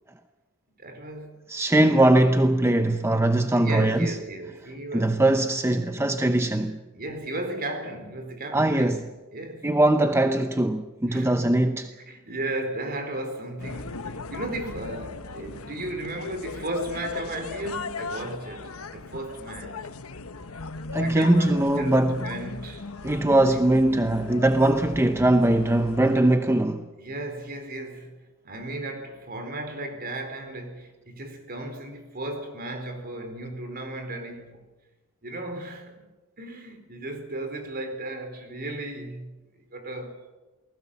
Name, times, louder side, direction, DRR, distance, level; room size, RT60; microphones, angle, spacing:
voice 1, 0.8-1.4 1.8-1.9 3.5-5.2 6.9-9.0 9.3-9.7 11.1-11.5 11.9-19.9 20.9-22.9 23.4-23.6 27.0-28.2 28.4-34.6 35.2-36.0 36.4-40.3, right 2 dB, 45° right, 4.3 m, -35 dB
voice 2, 1.5-4.2 4.9-6.8 8.5-9.1 9.6-11.9 20.9-22.3 23.0-26.8, right 1 dB, 10° right, 0.8 m, -21 dB
sound 1, 13.6-26.2, left 4 dB, 90° left, 1.2 m, -38 dB
29.0 x 20.0 x 7.2 m
head